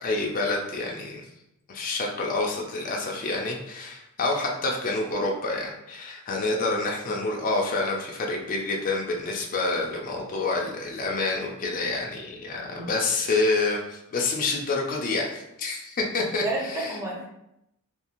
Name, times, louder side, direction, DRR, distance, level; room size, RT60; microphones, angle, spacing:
voice 1, 0.0-1.3 1.7-17.0, left 3 dB, 40° left, 0 dB, 0.4 m, -28 dB
voice 2, 16.4-17.2, right 2 dB, 15° right, -4 dB, 0.6 m, -31 dB
2.6 x 2.3 x 2.9 m, 0.82 s
head